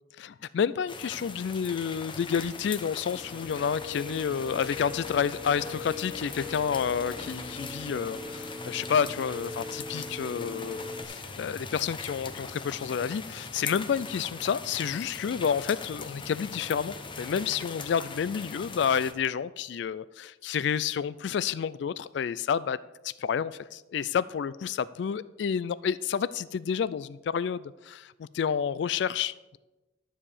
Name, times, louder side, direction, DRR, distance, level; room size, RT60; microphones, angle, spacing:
voice 1, 0.2-22.8 23.0-29.6, left 7 dB, 65° left, 0.3 m, -30 dB
sound 1, 0.9-19.1, left 4 dB, 25° left, 0.8 m, -41 dB
Guitar, 3.1-11.0, left 3 dB, 10° right, 0.9 m, -41 dB
12.5 x 4.8 x 7.1 m
head